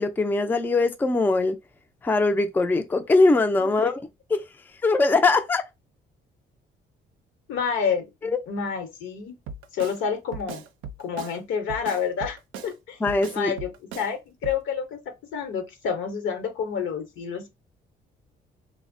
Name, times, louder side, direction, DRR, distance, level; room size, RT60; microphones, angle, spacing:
voice 1, 0.0-1.6 2.0-4.0 4.3-4.4 4.8-5.6 8.2-8.4 13.0-13.5, left 3 dB, 10° left, 0.3 m, -21 dB
voice 2, 3.6-3.9 7.5-8.1 8.5-9.3 9.7-10.6 11.0-12.4 12.6-13.0 13.3-13.7 14.0-15.0 15.3-17.5, left 6 dB, 80° left, 0.9 m, -28 dB
Drum kit, 9.5-10.0 10.3-11.4 11.7-12.7 13.1-14.1 14.4-14.6, right 5 dB, 90° right, 0.5 m, -38 dB
2.6 x 2.0 x 2.5 m
cardioid pair, 90°, 20 cm